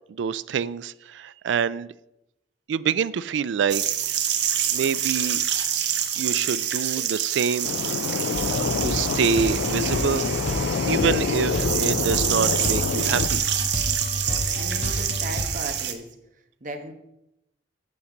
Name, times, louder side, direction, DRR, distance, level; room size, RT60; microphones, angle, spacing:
voice 1, 0.1-1.9 2.7-3.8 4.7-5.4 6.2-7.7 8.5-10.2 10.9-13.4, right 7 dB, 90° right, 18 dB, 0.3 m, -26 dB
sound 1, 3.7-15.9, right 9 dB, 70° right, 0.9 m, -27 dB
sound 2, 7.6-13.3, left 6 dB, 75° left, 0.3 m, -27 dB
sound 3, 8.3-15.5, left 1 dB, 40° left, 1.0 m, -30 dB
voice 2, 14.6-16.1 16.6-16.9, right 2 dB, 45° right, 5 dB, 1.1 m, -36 dB
8.5 x 6.6 x 5.1 m, 0.86 s
head